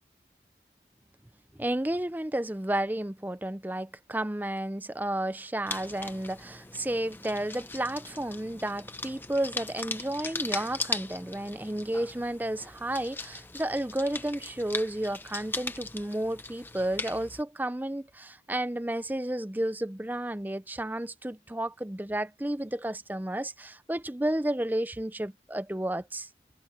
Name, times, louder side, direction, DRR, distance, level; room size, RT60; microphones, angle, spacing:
voice 1, 1.6-26.3, right 1 dB, 10° right, 0.5 m, -32 dB
sound 1, 5.7-17.4, left 3 dB, 10° left, 1.0 m, -39 dB
sound 2, 7.9-11.5, left 1 dB, 65° left, 5.7 m, -67 dB
head